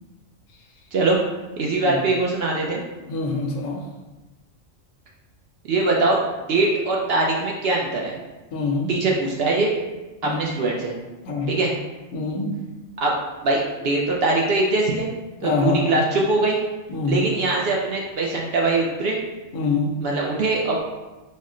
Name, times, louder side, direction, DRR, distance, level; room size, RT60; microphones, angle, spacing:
voice 1, 0.9-1.2 1.6-2.8 5.6-6.2 6.5-8.2 8.9-9.7 10.2-10.9 11.5-11.7 13.0-13.1 13.4-15.1 15.4-16.6 17.1-19.2 20.0-20.8, right 2 dB, 65° right, -2 dB, 0.6 m, -22 dB
voice 2, 3.1-3.8 8.5-8.9 10.2-10.6 11.2-11.6 12.1-12.5 15.4-15.9 16.9-17.3 19.5-19.9, left 3 dB, 80° left, 1 dB, 1.0 m, -25 dB
4.1 x 2.0 x 3.7 m, 1.1 s
omnidirectional pair, 1.4 m